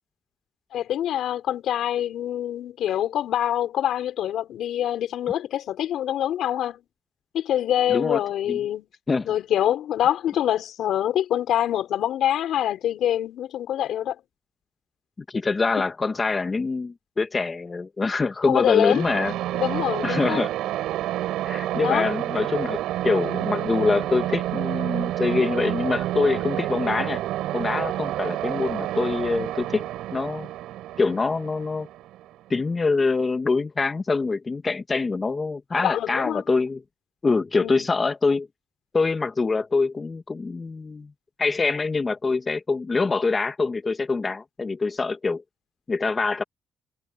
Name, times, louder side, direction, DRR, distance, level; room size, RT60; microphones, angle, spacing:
voice 1, 0.7-6.8 7.3-8.9 9.2-14.2 18.5-19.0 19.5-20.4 21.8-22.0 35.8-36.4 37.6-37.9, left 11 dB, 75° left, 4.7 m, -25 dB
voice 2, 15.3-19.3 20.0-20.5 21.4-27.2 27.5-30.5 31.0-31.9 32.5-36.8 37.2-38.5 38.9-41.1 41.4-45.4 45.9-46.4, left 4 dB, 30° left, 1.5 m, -25 dB
sound 1, 18.9-32.6, right 14 dB, 85° right, 6.5 m, -29 dB
cardioid pair, 90°, 0 cm